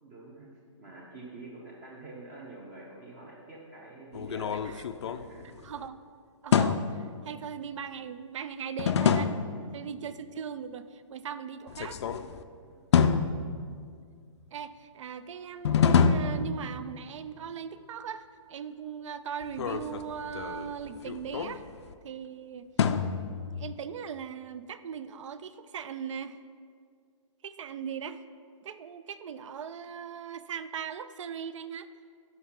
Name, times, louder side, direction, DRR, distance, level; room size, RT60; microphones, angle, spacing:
voice 1, 0.0-4.5 5.0-5.7 9.6-9.8 12.6-12.8, right 2 dB, 25° right, -4 dB, 0.7 m, -47 dB
sound 1, 4.1-5.9 6.5-7.1 8.8-9.6 11.7-12.4 12.9-14.0 15.6-17.1 19.4-21.9 22.8-23.7, left 6 dB, 60° left, 0.4 m, -27 dB
voice 2, 5.6-6.0 6.4-9.3 9.7-12.0 14.5-21.6 22.0-22.7 23.5-26.4 27.4-28.2 28.6-31.9, right 7 dB, 70° right, 13 dB, 0.4 m, -39 dB
5.6 x 5.4 x 5.8 m, 2.1 s
hypercardioid pair, 165°, 17 cm